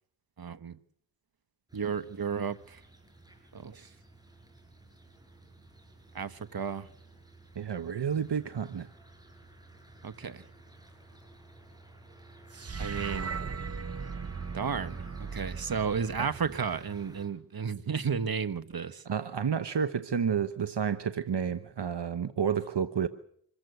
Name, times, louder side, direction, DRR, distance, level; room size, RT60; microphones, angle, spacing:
voice 1, 0.4-0.8 1.7-2.8 3.5-3.9 6.1-6.9 10.0-10.4 12.8-13.4 14.5-15.0 15.3-19.0, right 6 dB, 60° right, 1.3 m, -33 dB
sound 1, 1.7-17.3, right 2 dB, 10° right, 6.5 m, -54 dB
voice 2, 7.6-8.9 16.2-16.3 19.1-23.1, right 7 dB, 75° right, 1.1 m, -30 dB
sound 2, 12.5-16.9, right 5 dB, 35° right, 0.9 m, -38 dB
26.5 x 15.0 x 8.3 m
wide cardioid pair, 80°, 41 cm